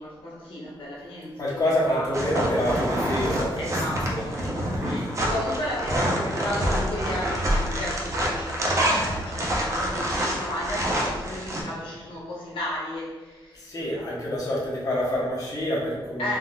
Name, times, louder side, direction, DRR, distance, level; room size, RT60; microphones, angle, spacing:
voice 1, 0.0-2.1 3.6-4.4 4.8-13.7 16.2-16.4, left 1 dB, 90° left, -4 dB, 0.9 m, -34 dB
voice 2, 1.4-3.8 4.1-5.1 13.5-16.3, left 1 dB, 40° left, -6 dB, 1.0 m, -27 dB
sound 1, 2.1-11.6, equal, 35° right, 0.6 m, -26 dB
3.6 x 2.6 x 2.3 m, 1.3 s
wide cardioid pair, 145°, 9 cm